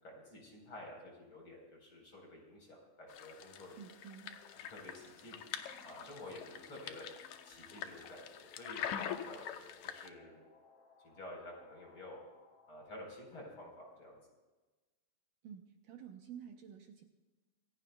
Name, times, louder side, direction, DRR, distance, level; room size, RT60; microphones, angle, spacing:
voice 1, 0.0-3.8 4.7-5.4 5.8-7.1 7.4-8.8 9.2-10.4 11.0-12.2 12.7-14.2, left 1 dB, 30° left, -1 dB, 4.8 m, -51 dB
sound 1, 3.1-10.1, left 9 dB, 70° left, 1.9 m, -45 dB
voice 2, 3.8-4.5 15.4-17.0, right 8 dB, 70° right, 3 dB, 2.3 m, -51 dB
sound 2, 4.5-14.0, left 1 dB, 55° left, 4.9 m, -65 dB
27.5 x 16.0 x 2.3 m, 1.2 s
omnidirectional pair, 4.4 m